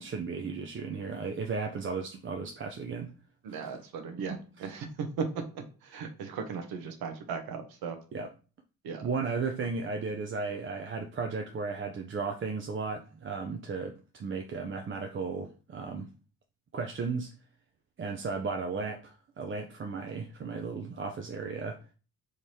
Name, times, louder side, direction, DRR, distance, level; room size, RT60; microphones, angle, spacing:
voice 1, 0.0-3.1 3.5-3.7 4.3-4.7 8.1-8.3 9.0-16.1 16.7-17.3 18.0-21.8, right 4 dB, 35° right, 0.5 m, -35 dB
voice 2, 3.4-8.0 8.8-9.1, right 5 dB, 75° right, 0.8 m, -37 dB
3.6 x 3.1 x 2.8 m
supercardioid pair, 50°, 37 cm